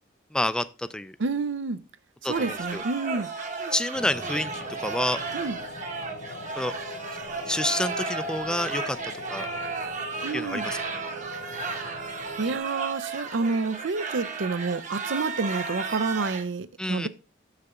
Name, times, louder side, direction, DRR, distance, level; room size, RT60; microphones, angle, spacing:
voice 1, 0.3-1.2 2.2-2.8 3.7-5.2 6.6-6.7 7.5-9.0 9.3-9.5 10.3-10.8 16.8-17.1, left 1 dB, 5° left, 0.3 m, -28 dB
voice 2, 1.2-1.8 2.2-3.3 5.3-5.6 10.2-10.7 12.4-17.1, right 4 dB, 70° right, 0.6 m, -29 dB
sound 1, 2.3-16.4, right 4 dB, 40° right, 1.0 m, -34 dB
sound 2, 3.9-12.6, left 1 dB, 60° left, 1.6 m, -40 dB
6.9 x 6.6 x 3.6 m
head